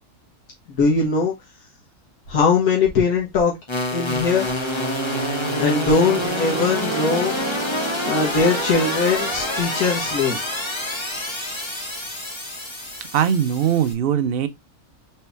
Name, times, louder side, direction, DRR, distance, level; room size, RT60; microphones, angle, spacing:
voice 1, 0.7-1.3 2.3-3.5 3.9-4.5 5.6-7.3 8.1-10.4, left 4 dB, 80° left, 1.7 m, -20 dB
sound 1, 3.7-13.9, equal, 20° left, 1.2 m, -26 dB
voice 2, 13.1-14.5, right 9 dB, 55° right, 0.7 m, -20 dB
4.4 x 3.6 x 3.3 m
omnidirectional pair, 1.6 m